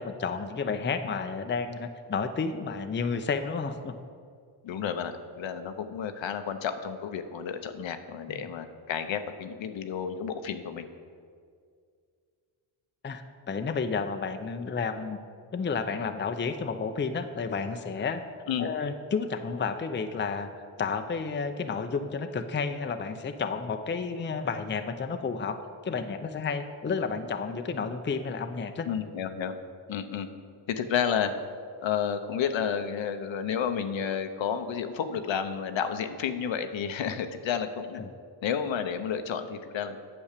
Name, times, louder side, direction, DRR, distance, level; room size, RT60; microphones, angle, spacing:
voice 1, 0.0-3.9 8.3-8.4 13.0-15.2 15.5-18.2 18.6-20.5 20.8-28.9 38.0-38.1, left 5 dB, 20° left, 8 dB, 0.6 m, -31 dB
voice 2, 4.6-10.9 18.5-18.7 28.8-29.5 29.9-30.3 30.7-31.3 31.8-38.0 38.4-40.0, left 7 dB, 65° left, 8 dB, 0.9 m, -31 dB
8.8 x 7.1 x 6.6 m, 2.2 s
cardioid pair, 70°, 50 cm